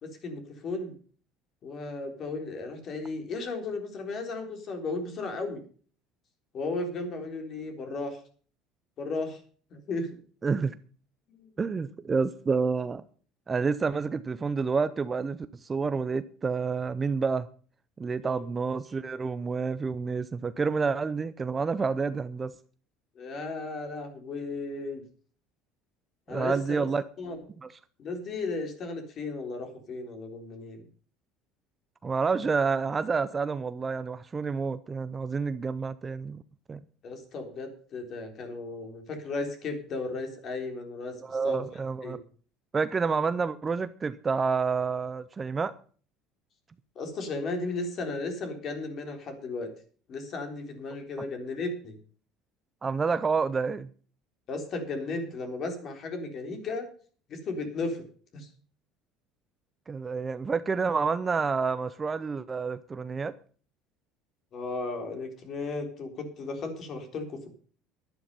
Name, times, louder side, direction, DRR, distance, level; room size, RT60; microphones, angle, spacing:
voice 1, 0.0-1.0 1.6-5.6 6.5-8.2 9.0-9.4 9.7-10.1 11.4-11.5 18.2-18.4 23.2-25.0 26.3-26.9 27.2-27.4 28.0-30.8 37.0-41.6 42.0-42.2 47.0-49.7 50.1-52.0 54.5-56.9 57.3-58.0 58.3-58.5 64.5-67.5, left 3 dB, 40° left, 3.6 m, -35 dB
voice 2, 10.4-10.7 11.6-13.0 13.5-17.5 18.0-22.5 26.3-27.0 27.6-27.7 32.0-36.4 36.7-36.8 41.2-42.2 42.7-45.7 51.2-51.3 52.8-53.9 59.9-63.3, right 5 dB, 20° right, 0.5 m, -29 dB
11.5 x 11.0 x 5.4 m
cardioid pair, 145°, 0 cm